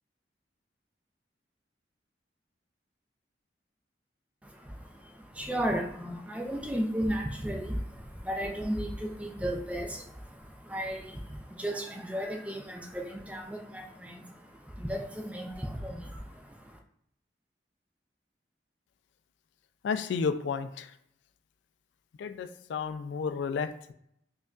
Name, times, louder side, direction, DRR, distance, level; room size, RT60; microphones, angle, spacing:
voice 1, 4.4-16.8, equal, 5° right, 2 dB, 0.4 m, -35 dB
voice 2, 19.8-20.9 22.2-23.9, left 5 dB, 85° left, 9 dB, 0.3 m, -32 dB
5.1 x 2.3 x 2.4 m, 0.72 s
head